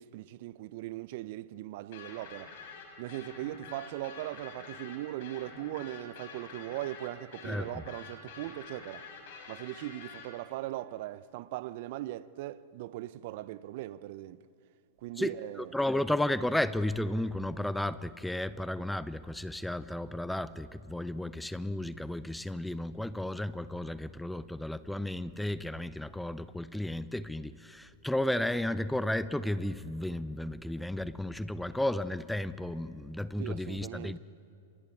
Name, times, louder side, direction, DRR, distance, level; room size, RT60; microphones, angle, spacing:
voice 1, 0.0-2.5 3.0-9.1 9.5-14.4 15.0-15.7 33.4-34.2, right 15 dB, 55° right, 0.7 m, -39 dB
sound 1, 1.9-10.3, left 5 dB, 60° left, 5.9 m, -48 dB
voice 2, 7.4-7.8 15.2-34.2, left 1 dB, 5° left, 0.6 m, -33 dB
29.0 x 26.5 x 4.7 m
hypercardioid pair, 105°, 0 cm